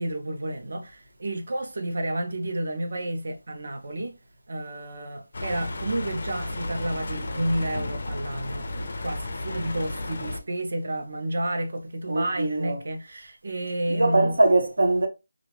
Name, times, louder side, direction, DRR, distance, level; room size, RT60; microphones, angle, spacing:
voice 1, 0.0-4.2 4.5-14.4, right 1 dB, 45° right, 0.6 m, -31 dB
sound 1, 5.3-10.4, left 2 dB, 40° left, 0.4 m, -33 dB
voice 2, 12.1-12.8 13.9-15.1, right 2 dB, 80° right, 0.9 m, -22 dB
2.5 x 2.2 x 3.2 m
figure-of-eight pair, 180°, 0 cm